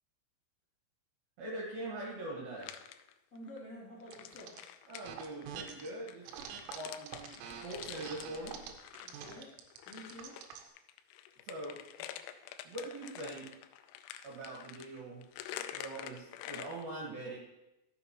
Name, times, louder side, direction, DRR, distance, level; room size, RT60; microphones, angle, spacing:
voice 1, 1.4-2.7 4.9-6.3 6.6-8.6 11.4-12.3 12.6-13.5 14.2-15.2 15.7-17.4, right 2 dB, 60° right, -5 dB, 2.9 m, -43 dB
sound 1, 2.6-3.6 4.0-10.5 10.8-16.8, left 11 dB, 85° left, 2.7 m, -48 dB
voice 2, 3.3-4.6 9.0-9.5 9.8-10.4, equal, 30° left, -9 dB, 1.7 m, -49 dB
sound 2, 4.1-4.6 5.0-5.9 6.2-10.7, right 8 dB, 85° right, 3.5 m, -46 dB
13.5 x 6.5 x 3.0 m, 0.90 s
omnidirectional pair, 5.8 m